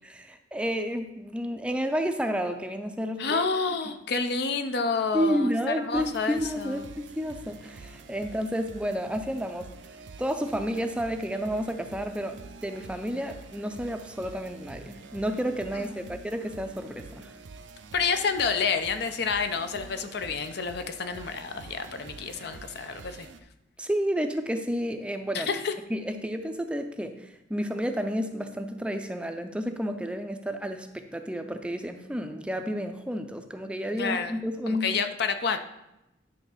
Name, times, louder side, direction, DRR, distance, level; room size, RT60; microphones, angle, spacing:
voice 1, 0.1-3.5 5.1-9.7 10.2-17.3 23.8-25.5 25.9-34.9, equal, 5° right, 7 dB, 0.5 m, -31 dB
voice 2, 3.2-6.9 15.7-16.0 17.9-23.3 25.3-25.7 34.0-35.6, left 5 dB, 60° left, 8 dB, 0.6 m, -29 dB
sound 1, 5.9-23.4, right 4 dB, 80° right, 0.5 m, -47 dB
10.5 x 3.5 x 5.7 m, 0.91 s
head